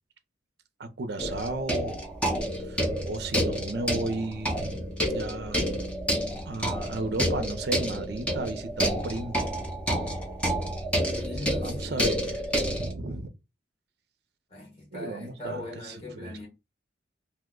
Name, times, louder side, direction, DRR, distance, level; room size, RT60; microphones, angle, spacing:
voice 1, 0.8-2.0 2.6-5.6 6.5-9.5 11.6-12.2 12.7-13.3 14.9-16.5, right 2 dB, 60° right, 0.5 m, -34 dB
sound 1, 1.2-12.9, equal, 5° left, 0.6 m, -29 dB
voice 2, 11.1-12.1 14.5-16.5, left 2 dB, 30° left, 1.3 m, -40 dB
2.8 x 2.1 x 3.6 m
head